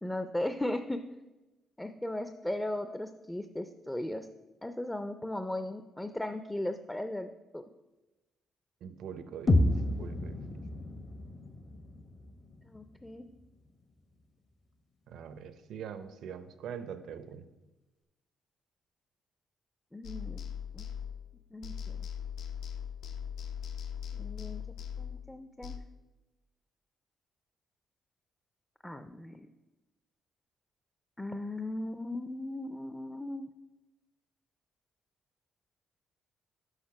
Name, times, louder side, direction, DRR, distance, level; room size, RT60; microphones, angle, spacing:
voice 1, 0.0-1.0 1.8-4.3 4.6-7.6 12.7-13.3 19.9-20.5 20.7-20.9 21.5-22.0 24.1-24.6 25.0-25.8 28.8-29.5 31.2-33.5, left 1 dB, 10° left, 9 dB, 0.4 m, -37 dB
voice 2, 8.8-9.7 10.0-10.6 15.1-17.4, right 7 dB, 75° right, 10 dB, 0.6 m, -43 dB
sound 1, 9.5-13.5, left 1 dB, 40° left, 0.7 m, -31 dB
sound 2, 20.0-21.4 21.6-25.8, left 8 dB, 80° left, 0.6 m, -40 dB
6.5 x 5.2 x 5.9 m, 1.1 s
cardioid pair, 90°, 0 cm